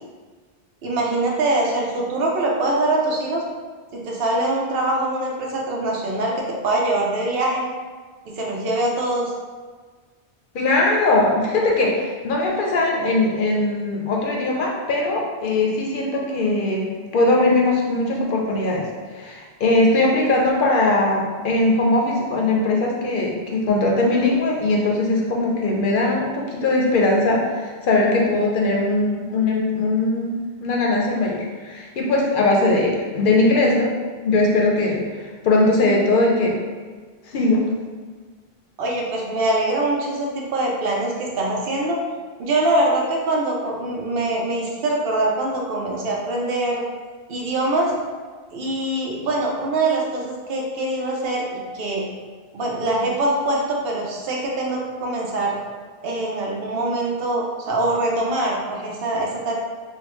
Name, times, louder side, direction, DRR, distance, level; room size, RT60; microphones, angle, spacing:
voice 1, 0.8-3.4 3.9-7.6 8.2-9.3 38.8-42.0 42.4-46.8 47.3-47.9 48.5-52.0 52.5-55.6 56.0-59.5, right 2 dB, 70° right, -1 dB, 0.8 m, -23 dB
voice 2, 10.5-16.8 17.1-18.8 19.1-33.9 34.2-36.6 37.3-37.6, left 2 dB, 60° left, -1 dB, 0.6 m, -20 dB
3.3 x 2.1 x 3.0 m, 1.5 s
omnidirectional pair, 1.0 m